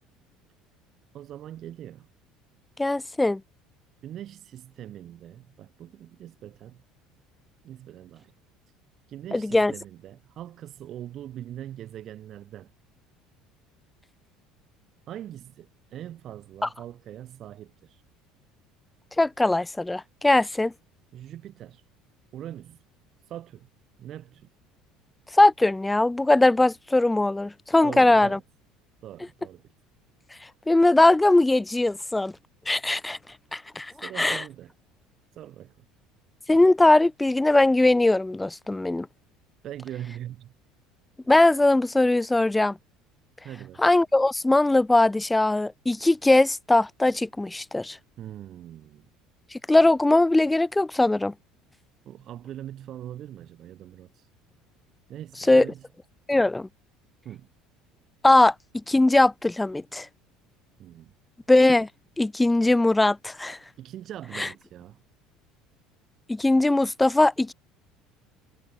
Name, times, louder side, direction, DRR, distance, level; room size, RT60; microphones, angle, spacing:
voice 1, 1.1-2.1 4.0-6.8 7.6-8.3 9.1-12.7 15.1-18.0 21.1-21.8 22.3-22.8 23.2-23.7 24.0-24.5 27.8-28.4 29.0-29.7 33.9-34.7 35.3-35.7 39.6-40.5 43.4-43.8 48.2-49.1 52.0-54.3 55.1-55.8 57.2-57.5 60.8-61.1 63.8-65.0, right 11 dB, 45° right, 0.8 m, -41 dB
voice 2, 2.8-3.4 9.3-9.7 16.6-16.7 19.2-20.7 25.3-28.4 30.7-32.3 32.7-33.2 33.5-34.4 36.5-39.1 41.3-42.8 43.8-48.0 49.5-51.3 55.5-55.7 56.3-56.7 58.2-58.5 58.9-60.1 61.5-61.9 62.2-63.6 64.4-64.5 66.3-67.5, left 2 dB, 10° left, 0.3 m, -20 dB
figure-of-eight pair, 60°, 0 cm